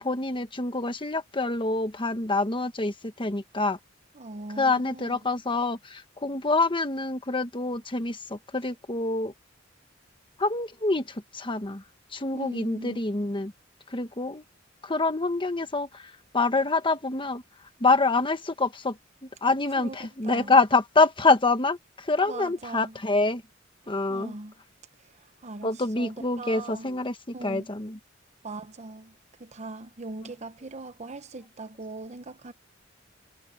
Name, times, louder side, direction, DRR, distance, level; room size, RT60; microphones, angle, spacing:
voice 1, 0.0-3.8 4.6-9.3 10.4-11.8 12.1-13.5 13.9-14.4 14.8-17.4 17.8-23.4 23.9-24.3 25.6-28.0, left 3 dB, 25° left, 1.4 m, -26 dB
voice 2, 4.2-5.2 12.3-13.0 19.8-20.0 20.2-20.5 22.3-22.9 24.1-24.5 25.4-26.9 27.3-27.7 28.4-29.1 29.4-32.5, right 2 dB, 35° right, 0.9 m, -40 dB
head